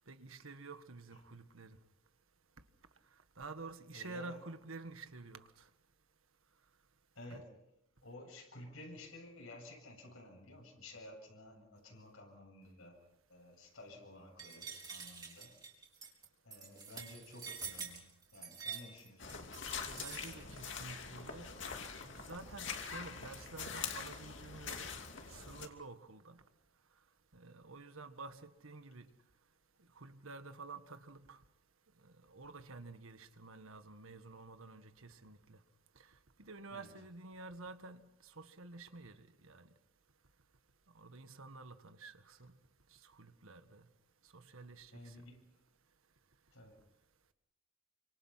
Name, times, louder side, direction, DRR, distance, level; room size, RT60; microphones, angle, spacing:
voice 1, 0.1-1.8 3.4-5.7 7.3-7.4 19.9-21.5 22.0-24.9 25.3-26.4 27.3-29.1 29.9-31.4 32.0-35.6 35.9-36.1 36.4-39.7 40.9-42.5 43.0-43.8 44.3-45.2, right 3 dB, 85° right, 1.7 m, -50 dB
voice 2, 3.9-4.4 7.2-7.5 8.0-13.0 13.3-15.5 16.4-18.1 18.3-19.4 36.7-36.9 44.9-45.4 46.5-46.8, left 1 dB, 85° left, 7.8 m, -53 dB
sound 1, 14.4-20.7, right 5 dB, 20° right, 4.0 m, -47 dB
sound 2, 19.2-25.7, left 6 dB, 60° left, 2.7 m, -44 dB
28.5 x 25.5 x 5.9 m
head